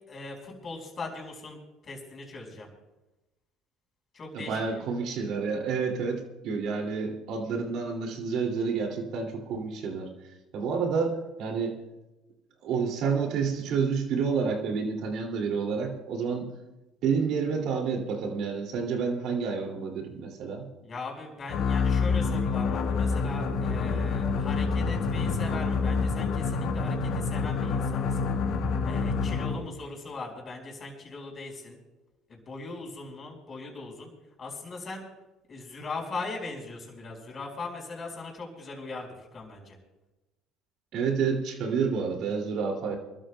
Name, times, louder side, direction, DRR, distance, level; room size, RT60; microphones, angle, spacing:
voice 1, 0.0-2.7 4.1-4.9 20.8-28.3 28.8-31.8 32.3-34.1 34.4-35.0 35.5-39.8, left 3 dB, 35° left, 1 dB, 4.8 m, -39 dB
voice 2, 4.3-10.1 10.5-11.8 12.6-16.5 17.0-20.7 40.9-43.0, right 5 dB, 65° right, 2 dB, 2.5 m, -29 dB
sound 1, 21.5-29.7, left 4 dB, 65° left, 1.3 m, -27 dB
29.0 x 13.0 x 2.3 m, 1.0 s
supercardioid pair, 85°, 0 cm